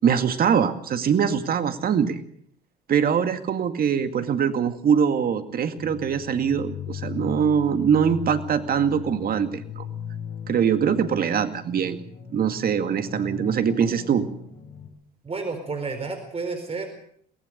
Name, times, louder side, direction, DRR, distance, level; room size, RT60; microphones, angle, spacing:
voice 1, 0.0-2.2 2.9-9.9 10.5-12.0 12.3-14.3, right 7 dB, 45° right, 9 dB, 2.1 m, -23 dB
sound 1, 5.8-14.9, left 7 dB, 55° left, 7.5 m, -37 dB
voice 2, 15.2-16.9, right 4 dB, 30° right, 7 dB, 4.3 m, -31 dB
23.5 x 18.5 x 6.6 m, 0.64 s
hypercardioid pair, 65°, 21 cm